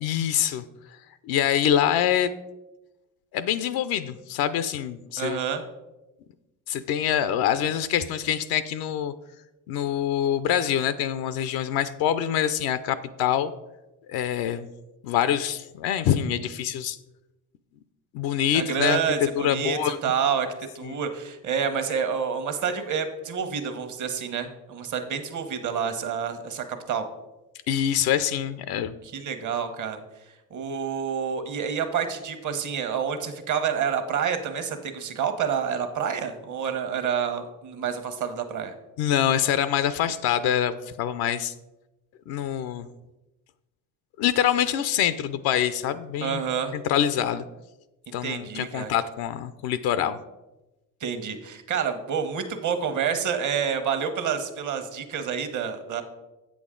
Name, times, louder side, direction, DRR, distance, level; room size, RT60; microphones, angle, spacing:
voice 1, 0.0-0.6 1.2-2.3 3.3-5.4 6.7-9.1 9.7-13.5 14.1-14.7 15.0-17.0 18.1-20.0 20.8-21.0 27.7-28.9 39.0-41.5 42.3-42.9 44.2-46.4 46.7-47.4 48.1-50.2, left 10 dB, 75° left, 13 dB, 0.6 m, -25 dB
voice 2, 5.2-5.6 18.5-20.5 20.7-27.0 29.0-30.0 30.5-38.7 46.2-46.7 48.1-48.9 51.0-56.0, right 7 dB, 50° right, 8 dB, 1.1 m, -28 dB
8.0 x 6.2 x 3.7 m, 1.0 s
supercardioid pair, 70°, 38 cm